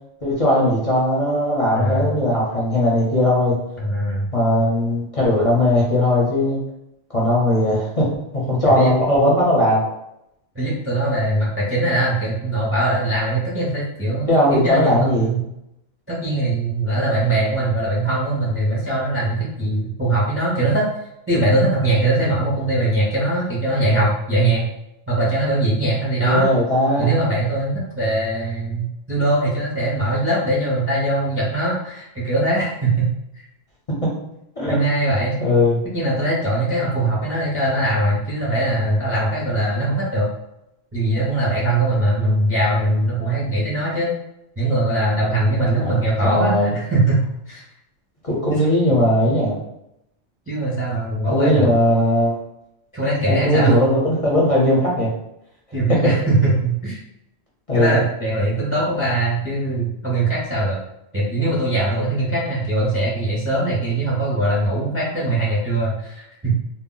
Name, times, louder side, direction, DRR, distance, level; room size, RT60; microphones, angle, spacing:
voice 1, 0.2-3.5 4.3-6.6 7.1-8.1 8.3-9.8 14.3-15.3 26.2-27.1 34.0-34.1 34.6-34.8 35.4-35.8 45.8-46.7 48.2-49.6 51.3-52.4 53.3-55.1 55.9-56.0 57.7-57.9, left 1 dB, 40° left, -6 dB, 0.6 m, -18 dB
voice 2, 1.8-2.1 3.8-4.3 8.6-8.9 10.5-15.4 16.1-20.9 21.3-24.7 25.1-26.5 27.0-33.1 34.7-35.4 35.9-40.3 40.9-44.1 44.6-47.6 48.5-48.6 50.5-51.7 52.9-53.7 55.7-57.0 57.7-60.8 61.1-66.5, right 2 dB, 20° right, -5 dB, 0.4 m, -21 dB
2.2 x 2.0 x 3.7 m, 0.84 s
omnidirectional pair, 1.2 m